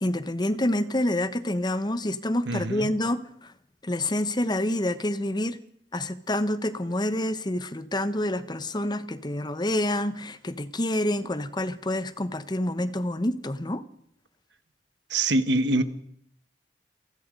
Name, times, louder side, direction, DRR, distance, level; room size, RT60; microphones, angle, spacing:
voice 1, 0.0-3.5 3.8-5.6 5.9-13.8, left 1 dB, 25° left, 13 dB, 1.0 m, -27 dB
voice 2, 2.5-2.9 15.1-15.8, right 2 dB, 70° right, 11 dB, 1.6 m, -24 dB
27.5 x 19.5 x 5.4 m, 0.68 s
head